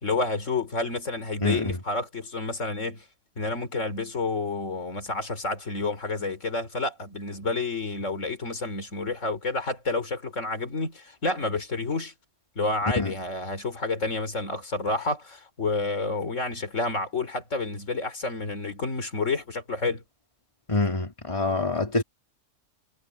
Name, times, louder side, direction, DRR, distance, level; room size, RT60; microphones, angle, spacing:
voice 1, 0.0-3.1 3.4-12.1 12.6-20.0, left 3 dB, 75° left, 3.7 m, -29 dB
voice 2, 1.4-1.8 13.0-13.1 20.7-22.0, left 3 dB, 25° left, 2.8 m, -26 dB
omnidirectional pair, 1.3 m